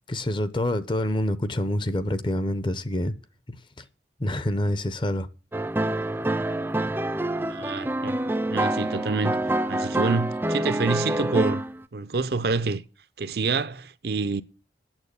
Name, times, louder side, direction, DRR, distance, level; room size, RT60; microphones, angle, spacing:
voice 1, 0.1-3.1 3.5-3.8 4.2-5.3, left 1 dB, 25° left, 0.6 m, -27 dB
sound 1, 5.5-11.8, right 1 dB, 10° right, 0.4 m, -26 dB
voice 2, 7.5-8.2 8.5-9.4 9.7-11.6 11.9-12.8 13.2-14.4, right 4 dB, 55° right, 0.6 m, -27 dB
9.0 x 7.2 x 8.2 m
head